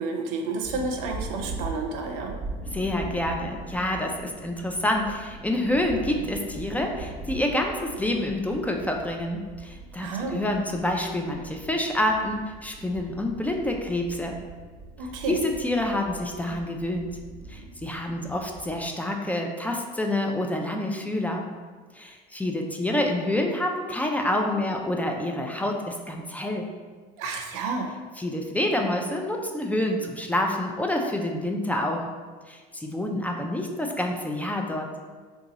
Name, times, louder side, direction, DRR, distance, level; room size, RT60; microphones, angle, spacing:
voice 1, 0.0-2.4 10.0-10.4 15.0-15.4 27.2-28.0, right 3 dB, 80° right, 3 dB, 0.5 m, -30 dB
sound 1, 0.6-18.8, right 2 dB, 25° right, 0.8 m, -41 dB
voice 2, 2.7-14.4 15.3-17.2 17.5-21.5 21.9-26.7 28.2-32.1 32.5-34.9, left 1 dB, 10° left, 2 dB, 0.4 m, -27 dB
2.8 x 2.3 x 3.8 m, 1.5 s
supercardioid pair, 90°, 18 cm